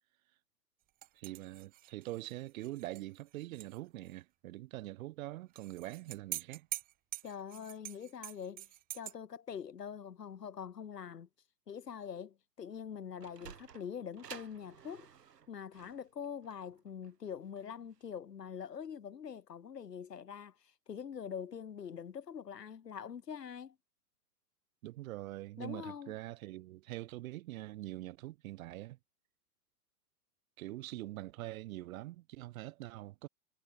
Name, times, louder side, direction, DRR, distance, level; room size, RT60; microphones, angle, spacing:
sound 1, 1.0-3.8 4.1-4.2 5.5-9.1, right 16 dB, 20° right, 0.6 m, -45 dB
voice 1, 1.1-6.7 24.8-29.0 30.6-33.3, right 17 dB, 60° right, 1.4 m, -44 dB
voice 2, 7.2-8.7 8.9-11.3 11.7-15.1 15.5-23.8 25.6-26.2, left 7 dB, 90° left, 6.2 m, -44 dB
Sliding door, 12.9-18.1, right 8 dB, 85° right, 6.8 m, -54 dB
hypercardioid pair, 125°, 47 cm